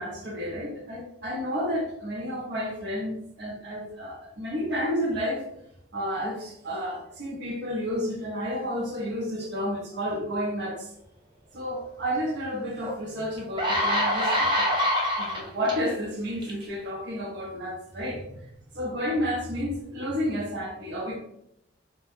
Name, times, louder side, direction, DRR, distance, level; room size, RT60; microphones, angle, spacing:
voice 1, 0.0-5.4 5.9-10.9 11.5-14.7 15.2-18.4 18.7-21.2, equal, 65° right, -1 dB, 0.7 m, -31 dB
sound 1, 12.8-12.9 13.4-15.7 16.4-16.6, left 1 dB, 25° right, 0.5 m, -25 dB
2.2 x 2.0 x 3.0 m, 0.79 s
head